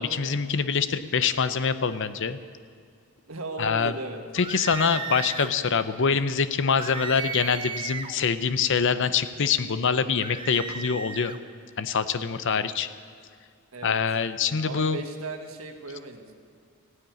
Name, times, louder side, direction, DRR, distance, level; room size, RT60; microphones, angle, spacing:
voice 1, 0.0-2.4 3.6-3.9 4.3-11.4 11.8-12.9 13.8-15.0, left 6 dB, 55° left, 12 dB, 0.7 m, -25 dB
voice 2, 3.3-4.2 13.7-14.0 14.6-16.3, right 3 dB, 65° right, 5 dB, 1.6 m, -36 dB
sound 1, 4.4-5.6 6.8-8.2 10.2-11.4, right 6 dB, 20° right, 0.7 m, -35 dB
16.0 x 9.7 x 9.2 m, 2.2 s
head